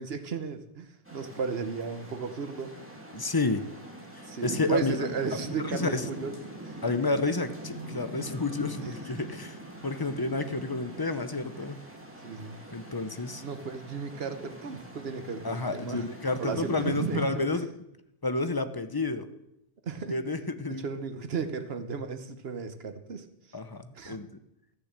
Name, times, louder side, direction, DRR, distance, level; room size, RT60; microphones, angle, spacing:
voice 1, 0.0-2.7 4.2-6.8 12.2-12.6 13.4-16.0 16.4-17.6 19.8-20.2 20.7-23.3 23.9-24.2, right 5 dB, 75° right, 9 dB, 1.3 m, -35 dB
sound 1, 1.1-17.3, right 1 dB, 10° right, 2.2 m, -42 dB
voice 2, 3.1-3.6 4.1-5.1 5.6-6.0 6.8-11.8 12.7-13.4 15.4-17.7 18.2-19.2 20.1-20.9 23.5-24.3, left 3 dB, 25° left, 10 dB, 0.8 m, -30 dB
14.5 x 6.9 x 7.5 m, 0.83 s
omnidirectional pair, 1.0 m